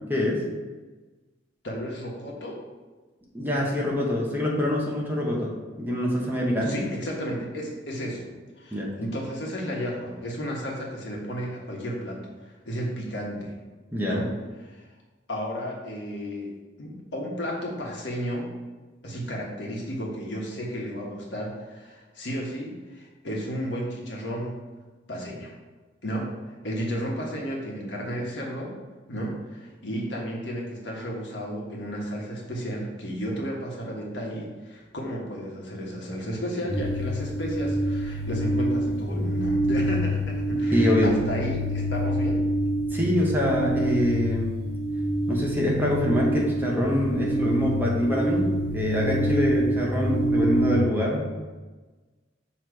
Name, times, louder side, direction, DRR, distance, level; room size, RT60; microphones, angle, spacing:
voice 1, 0.1-0.4 3.3-5.5 5.8-6.9 8.7-8.9 13.9-14.2 40.7-41.1 42.9-44.6 45.3-51.5, left 1 dB, 10° right, -3 dB, 0.9 m, -25 dB
voice 2, 1.6-2.6 6.6-8.3 8.6-13.5 14.0-14.3 14.6-14.9 15.3-16.5 16.8-18.5 19.0-24.6 25.1-25.5 26.0-26.3 26.6-28.7 29.1-42.4, equal, 65° left, -2 dB, 1.3 m, -33 dB
sound 1, 36.7-50.8, right 1 dB, 40° right, 1.7 m, -26 dB
6.5 x 3.2 x 4.6 m, 1.3 s
head